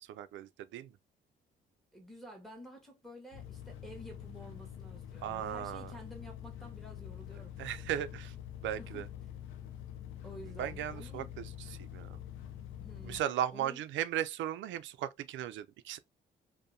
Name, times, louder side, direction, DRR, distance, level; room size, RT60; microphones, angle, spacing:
voice 1, 0.1-0.9 5.2-5.9 7.6-8.3 8.6-9.1 10.6-12.2 13.0-16.0, right 11 dB, 75° right, 0.4 m, -37 dB
voice 2, 1.9-8.0 8.8-9.1 10.2-11.3 12.8-13.2 13.5-13.8, equal, ahead, 1.2 m, -51 dB
sound 1, 3.3-13.2, left 10 dB, 85° left, 0.5 m, -46 dB
2.7 x 2.1 x 2.5 m
cardioid pair, 90°, 20 cm